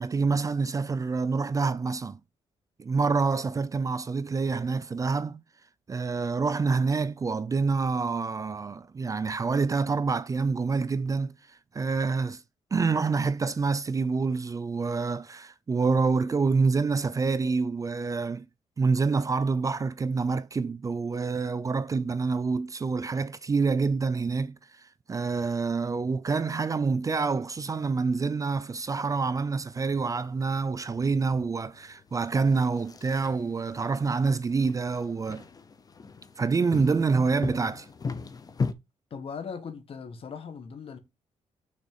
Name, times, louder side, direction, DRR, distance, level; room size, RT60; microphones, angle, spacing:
voice 1, 0.0-2.2 2.8-5.4 5.9-12.4 12.7-18.5 18.8-35.4 36.4-37.9, right 4 dB, 30° right, 0.5 m, -27 dB
sound 1, 29.7-38.7, left 4 dB, 30° left, 0.8 m, -39 dB
voice 2, 39.1-41.0, left 6 dB, 50° left, 1.7 m, -39 dB
6.5 x 4.1 x 5.5 m
cardioid pair, 105°, 12 cm